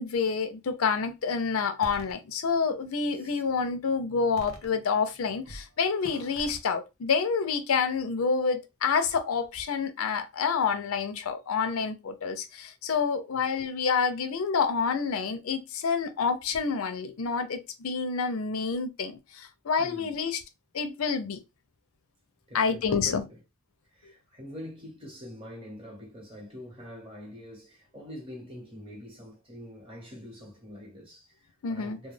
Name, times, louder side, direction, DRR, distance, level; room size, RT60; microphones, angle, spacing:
voice 1, 0.0-20.4 20.7-21.4 22.5-23.2 31.6-32.0, left 5 dB, 85° left, 0.5 m, -28 dB
sound 1, 1.8-2.1 2.8-3.5 4.4-5.1 5.5-5.7 6.0-6.6, right 1 dB, 90° right, 0.7 m, -45 dB
voice 2, 19.8-20.2 22.5-23.4 23.9-32.1, left 1 dB, 25° right, 1.2 m, -45 dB
2.3 x 2.2 x 3.2 m
head